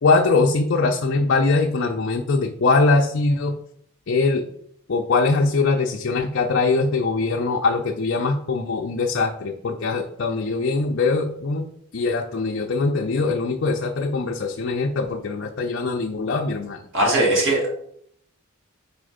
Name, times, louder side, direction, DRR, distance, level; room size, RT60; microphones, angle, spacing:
voice 1, 0.0-3.6 4.1-4.4 4.9-11.7 11.9-16.8, left 3 dB, 55° left, 2 dB, 0.5 m, -22 dB
voice 2, 16.9-17.7, right 1 dB, 60° right, -2 dB, 1.9 m, -19 dB
4.7 x 4.3 x 5.0 m, 0.69 s
head